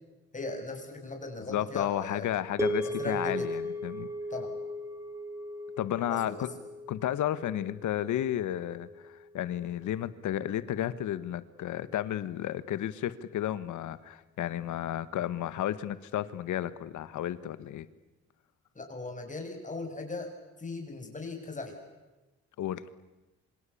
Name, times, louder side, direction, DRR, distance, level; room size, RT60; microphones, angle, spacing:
voice 1, 0.3-2.3 2.8-3.5 4.3-4.5 6.1-6.4 18.7-20.3 20.6-21.8, left 3 dB, 25° left, 4 dB, 7.4 m, -38 dB
voice 2, 1.5-4.1 5.8-6.5 6.9-17.9 22.6-22.8, left 12 dB, 75° left, 15 dB, 1.4 m, -32 dB
sound 1, 2.6-10.9, equal, 10° right, 3.7 m, -38 dB
27.5 x 25.5 x 8.6 m, 1.1 s
cardioid pair, 90°, 30 cm